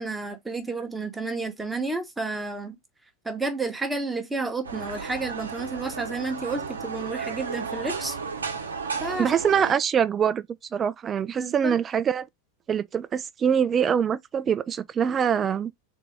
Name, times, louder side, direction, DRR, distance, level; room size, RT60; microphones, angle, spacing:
voice 1, 0.0-2.8 3.2-8.2 9.0-9.4 11.3-11.8, right 3 dB, 10° right, 1.0 m, -31 dB
sound 1, 4.6-9.7, right 5 dB, 70° right, 0.9 m, -33 dB
voice 2, 9.2-10.5 10.7-12.3 12.7-15.7, right 7 dB, 25° right, 0.4 m, -24 dB
3.9 x 2.8 x 3.4 m
figure-of-eight pair, 90°, 0 cm